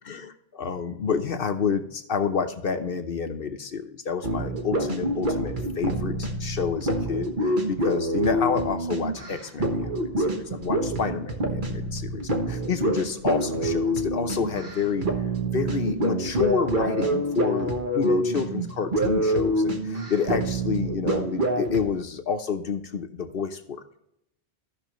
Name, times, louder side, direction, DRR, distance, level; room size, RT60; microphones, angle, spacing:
voice 1, 0.0-15.1 15.5-24.0, left 6 dB, 60° left, 8 dB, 1.0 m, -29 dB
sound 1, 4.2-21.9, right 1 dB, 50° right, 1.3 m, -27 dB
15.0 x 5.8 x 3.0 m, 0.80 s
omnidirectional pair, 1.1 m